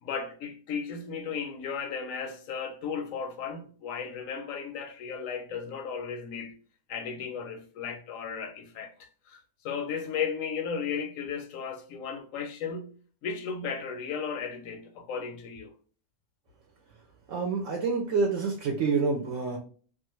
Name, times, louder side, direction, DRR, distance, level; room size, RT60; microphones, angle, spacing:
voice 1, 0.0-6.5 6.9-12.9 13.2-15.7, left 6 dB, 85° left, 1.0 m, -35 dB
voice 2, 17.3-19.6, right 4 dB, 75° right, 0.9 m, -27 dB
2.5 x 2.3 x 2.9 m
omnidirectional pair, 1.3 m